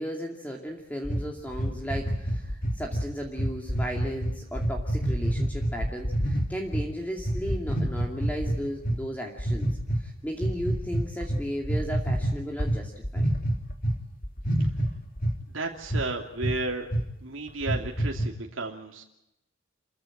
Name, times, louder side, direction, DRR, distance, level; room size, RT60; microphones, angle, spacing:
voice 1, 0.0-9.7 10.0-13.3, equal, 10° left, 0 dB, 2.6 m, -35 dB
sound 1, 1.0-6.9 7.2-9.0 9.4-10.0 10.4-14.0 14.2-15.4 15.9-16.0 16.4-16.6 16.9-17.0 17.5-18.3, right 1 dB, 45° left, 2.9 m, -27 dB
voice 2, 15.5-16.9 17.2-19.0, right 3 dB, 85° right, 1 dB, 2.8 m, -33 dB
28.0 x 15.5 x 8.9 m, 0.84 s
head